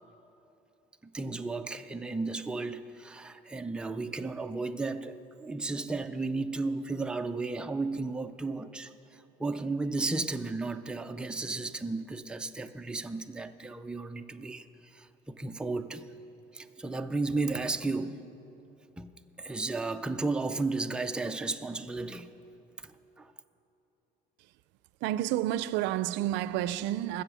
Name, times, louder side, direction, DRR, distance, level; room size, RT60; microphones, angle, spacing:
voice 1, 1.0-8.9 9.4-14.7 14.9-16.1 16.5-18.2 19.0-19.1 19.4-22.3 22.8-23.3, right 3 dB, 5° right, 0.4 m, -34 dB
voice 2, 25.0-27.2, right 13 dB, 85° right, 0.4 m, -30 dB
20.0 x 7.7 x 6.9 m
cardioid pair, 145°, 19 cm